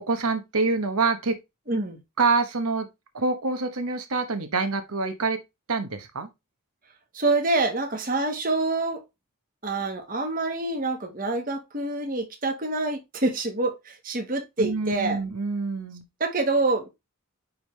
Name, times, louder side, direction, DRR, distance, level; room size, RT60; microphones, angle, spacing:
voice 1, 0.0-1.4 2.2-2.9 3.1-5.4 5.7-6.3 14.6-16.0, right 3 dB, 85° right, 1.1 m, -26 dB
voice 2, 1.7-2.0 7.1-9.0 9.6-15.2 16.2-16.9, right 2 dB, 40° right, 1.4 m, -26 dB
10.0 x 3.6 x 3.2 m
head